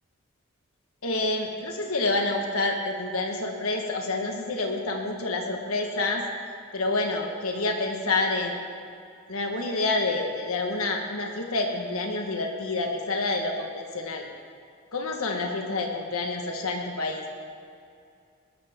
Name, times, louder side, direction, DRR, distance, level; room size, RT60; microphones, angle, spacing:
voice 1, 1.0-6.2 6.7-8.6 9.3-14.3 14.9-17.2, left 2 dB, 80° left, 2 dB, 1.5 m, -28 dB
20.5 x 13.0 x 3.7 m, 2.4 s
head